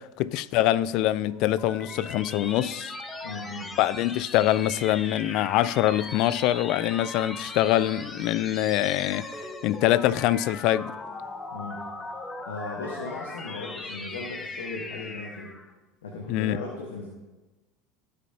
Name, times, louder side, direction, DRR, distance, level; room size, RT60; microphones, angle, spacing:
voice 1, 0.0-3.0 3.8-9.3 9.6-11.0 16.3-16.6, left 14 dB, 60° left, 0.4 m, -24 dB
sound 1, 1.1-15.7, left 3 dB, 20° left, 1.0 m, -39 dB
voice 2, 3.2-3.7 11.5-11.8 12.4-15.6 16.0-17.1, left 3 dB, 85° left, 1.3 m, -37 dB
16.0 x 5.5 x 2.8 m
hypercardioid pair, 85°, 0 cm